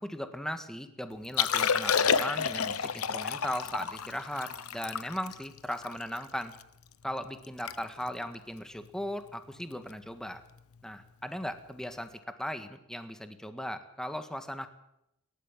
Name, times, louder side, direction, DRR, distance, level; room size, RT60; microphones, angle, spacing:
voice 1, 0.0-6.6 7.0-10.4 10.8-14.7, equal, 5° left, 8 dB, 1.7 m, -37 dB
Liquid, 1.2-6.6 7.1-7.2 7.4-8.3 8.9-9.1 10.6-10.7, left 7 dB, 70° left, 1.0 m, -30 dB
29.5 x 13.0 x 7.4 m, 0.84 s
head